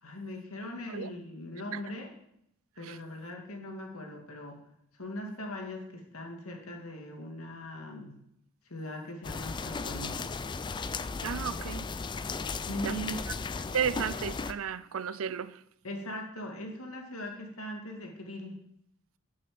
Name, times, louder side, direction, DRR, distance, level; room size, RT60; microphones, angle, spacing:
voice 1, 0.0-2.1 2.8-4.6 5.0-8.2 8.7-10.3 12.6-13.2 15.8-18.6, left 1 dB, 85° left, 2.3 m, -40 dB
sound 1, 9.2-14.5, left 4 dB, 20° left, 0.3 m, -36 dB
voice 2, 11.2-11.9 12.8-13.0 13.7-15.6, right 7 dB, 70° right, 0.5 m, -33 dB
9.1 x 6.3 x 7.7 m
head